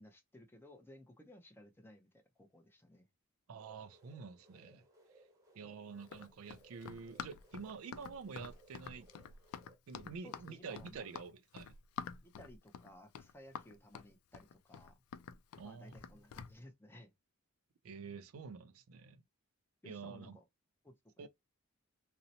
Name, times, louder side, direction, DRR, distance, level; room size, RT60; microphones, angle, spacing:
voice 1, 0.0-3.1 10.2-11.1 12.2-15.0 15.6-17.1 19.8-20.4 20.8-21.3, left 1 dB, 10° left, 0.5 m, -58 dB
voice 2, 3.5-4.8 5.6-9.1 9.9-11.8 15.6-15.9 17.8-19.2 19.8-20.4 21.2-21.3, right 5 dB, 80° right, 0.4 m, -48 dB
sound 1, 3.6-9.8, right 2 dB, 15° right, 0.9 m, -65 dB
Run, 6.0-16.5, left 7 dB, 90° left, 0.3 m, -48 dB
2.7 x 2.0 x 2.7 m
head